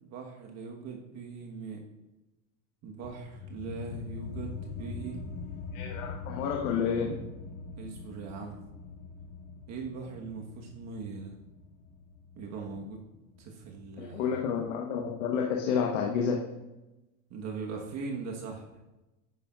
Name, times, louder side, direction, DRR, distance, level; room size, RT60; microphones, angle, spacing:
voice 1, 0.0-1.8 2.8-5.2 7.8-8.6 9.7-11.3 12.4-13.0 13.4-14.3 17.3-18.7, right 4 dB, 45° right, 0 dB, 1.4 m, -40 dB
sound 1, 3.0-14.1, left 4 dB, 25° left, 0.7 m, -43 dB
voice 2, 5.7-7.1 14.0-16.4, left 6 dB, 90° left, 0 dB, 1.2 m, -30 dB
11.0 x 9.6 x 2.4 m, 1.0 s
supercardioid pair, 135°, 38 cm